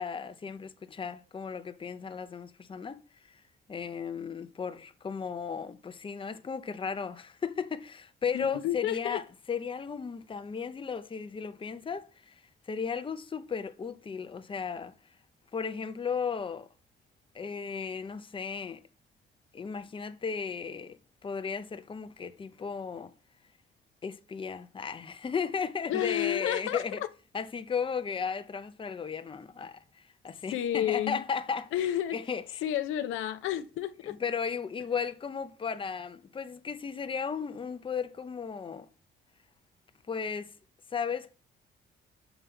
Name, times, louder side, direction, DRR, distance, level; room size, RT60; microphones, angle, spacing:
voice 1, 0.0-3.0 3.7-12.4 12.7-14.9 15.5-16.7 17.3-18.8 19.5-21.0 21.2-23.1 24.0-27.0 27.3-31.7 32.1-32.6 34.0-38.9 40.1-40.5 40.9-41.3, left 6 dB, 25° left, 0.6 m, -35 dB
voice 2, 8.3-9.2 25.9-27.1 30.5-31.2 31.7-32.2 32.6-34.2, left 12 dB, 90° left, 0.6 m, -31 dB
7.0 x 3.2 x 5.5 m
cardioid pair, 90°, 20 cm